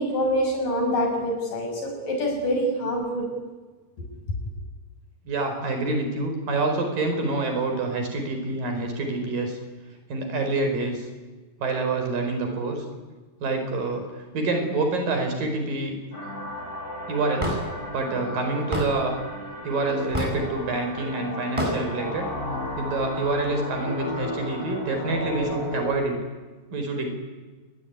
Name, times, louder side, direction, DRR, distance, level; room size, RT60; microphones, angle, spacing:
voice 1, 0.0-3.3, equal, 75° left, 2 dB, 8.6 m, -25 dB
voice 2, 5.2-9.6 10.1-11.1 11.6-12.8 13.4-15.9 17.1-17.6 17.9-19.2 19.6-22.3 22.8-26.2 26.7-27.1, right 3 dB, 85° right, 5 dB, 6.7 m, -27 dB
sound 1, 16.1-26.0, left 1 dB, 90° left, 8.8 m, -34 dB
Hammer / Wood, 17.4-17.6 18.7-18.9 20.1-20.4 21.6-21.8, equal, 10° right, 7.6 m, -26 dB
27.5 x 22.5 x 9.7 m, 1.3 s
omnidirectional pair, 3.8 m